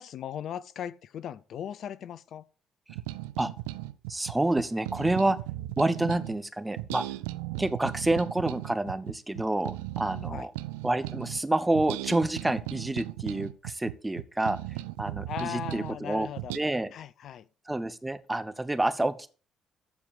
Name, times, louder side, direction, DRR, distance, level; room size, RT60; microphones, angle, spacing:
voice 1, 0.0-2.4 10.3-10.5 15.3-16.5 16.9-17.5, left 9 dB, 60° left, 0.6 m, -38 dB
sound 1, 2.9-6.4 6.8-11.4 11.8-16.0 16.4-16.6, right 17 dB, 80° right, 0.4 m, -36 dB
voice 2, 4.1-5.4 5.8-7.0 7.6-10.5 10.8-16.3 16.5-16.9 17.7-19.3, right 2 dB, 15° right, 1.3 m, -28 dB
14.5 x 4.8 x 6.9 m
hypercardioid pair, 50°, 0 cm